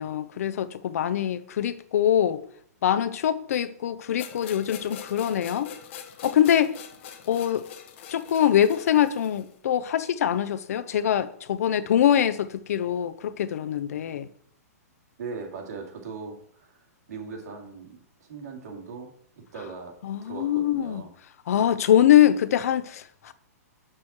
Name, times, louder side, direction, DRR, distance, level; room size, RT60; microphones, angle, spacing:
voice 1, 0.0-2.4 2.8-5.7 6.2-6.8 7.3-7.6 8.1-14.3 20.0-21.0 21.5-23.3, left 10 dB, 65° left, 0.6 m, -23 dB
sound 1, 4.2-9.5, left 8 dB, 50° left, 0.9 m, -43 dB
voice 2, 15.2-16.7 17.1-19.1 19.5-19.9 20.2-21.1, right 5 dB, 75° right, 2.6 m, -39 dB
6.3 x 6.1 x 4.3 m
hypercardioid pair, 150°, 9 cm